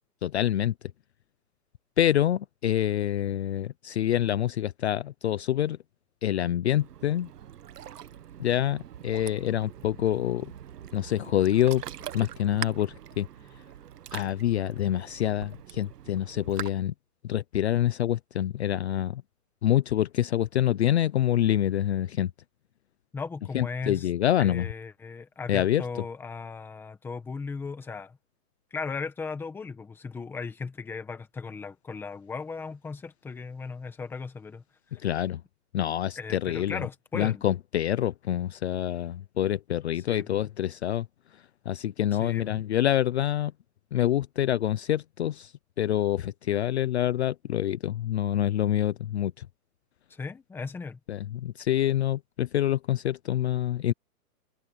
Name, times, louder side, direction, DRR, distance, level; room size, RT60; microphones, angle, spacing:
voice 1, 0.2-0.7 2.0-5.8 6.2-7.3 8.4-10.5 10.9-11.8 12.1-13.3 14.1-16.9 17.2-19.2 19.6-22.3 23.5-24.6 25.5-25.8 35.0-35.4 35.7-36.8 37.2-41.0 41.7-43.5 43.9-45.5 45.8-49.3 51.1-53.9, left 12 dB, 45° left, 0.7 m, -26 dB
Ocean, 6.7-16.7, right 10 dB, 75° right, 1.6 m, -43 dB
voice 2, 23.1-24.1 24.4-28.2 28.7-34.6 34.9-35.0 36.1-37.5 39.9-40.5 42.1-42.6 50.1-51.0, left 4 dB, 5° left, 1.4 m, -37 dB
hypercardioid pair, 170°, 47 cm